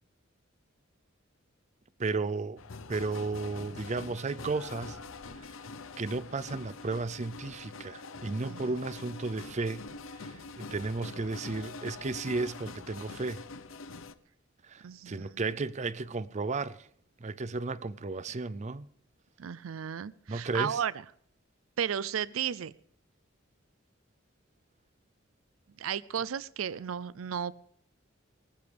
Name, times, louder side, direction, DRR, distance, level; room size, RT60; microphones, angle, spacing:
voice 1, 2.0-2.6 2.9-5.0 5.4-5.6 6.0-9.9 10.1-13.5 14.6-16.9 17.2-18.9 20.3-20.8, right 3 dB, 35° right, 0.5 m, -34 dB
sound 1, 2.6-14.1, left 3 dB, 85° left, 0.8 m, -45 dB
voice 2, 14.8-15.3 19.4-20.9 21.8-22.7 25.8-27.5, right 8 dB, 90° right, 0.4 m, -34 dB
19.5 x 14.5 x 3.4 m
head